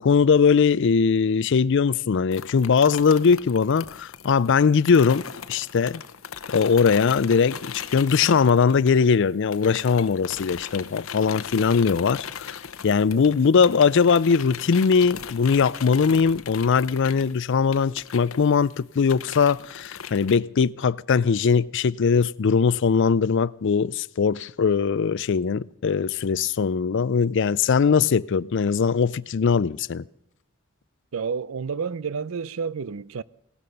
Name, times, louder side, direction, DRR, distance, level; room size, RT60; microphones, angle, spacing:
voice 1, 0.0-6.0 6.5-30.0, left 5 dB, 60° left, 0.4 m, -21 dB
sound 1, 2.3-9.2 9.5-20.4, left 7 dB, 80° left, 0.9 m, -38 dB
voice 2, 31.1-33.2, right 5 dB, 75° right, 0.5 m, -30 dB
18.0 x 12.5 x 5.3 m
head